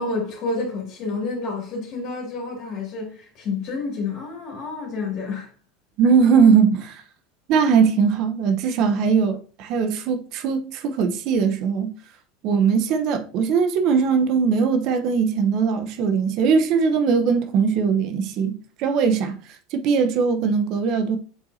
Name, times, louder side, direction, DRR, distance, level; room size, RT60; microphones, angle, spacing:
voice 1, 0.0-5.5, left 3 dB, 50° left, 2.7 m, -29 dB
voice 2, 6.0-7.0 7.5-11.9 12.4-19.4 19.7-21.2, right 6 dB, 55° right, 0.9 m, -20 dB
7.9 x 4.6 x 2.8 m
hypercardioid pair, 85°, 0 cm